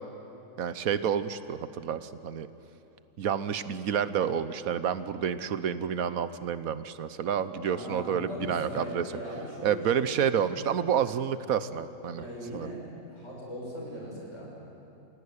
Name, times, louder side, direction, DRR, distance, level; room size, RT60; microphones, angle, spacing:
voice 1, 0.6-2.5 3.2-9.0 9.6-12.2 12.5-12.7, right 8 dB, 80° right, 13 dB, 1.3 m, -29 dB
voice 2, 7.7-10.0 12.1-14.6, equal, 55° left, -3 dB, 7.2 m, -39 dB
29.5 x 16.5 x 9.8 m, 2.9 s
omnidirectional pair, 1.4 m